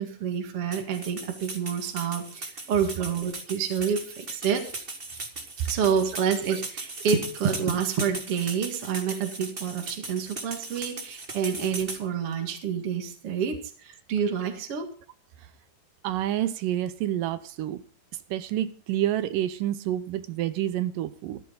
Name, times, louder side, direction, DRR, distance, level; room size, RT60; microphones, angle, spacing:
voice 1, 0.0-4.6 5.7-14.9, right 7 dB, 45° right, 2.7 m, -28 dB
sound 1, 0.7-12.0, right 3 dB, 30° right, 1.1 m, -38 dB
voice 2, 16.0-17.8 18.3-21.4, right 12 dB, 75° right, 2.3 m, -28 dB
14.5 x 14.0 x 3.9 m
omnidirectional pair, 4.0 m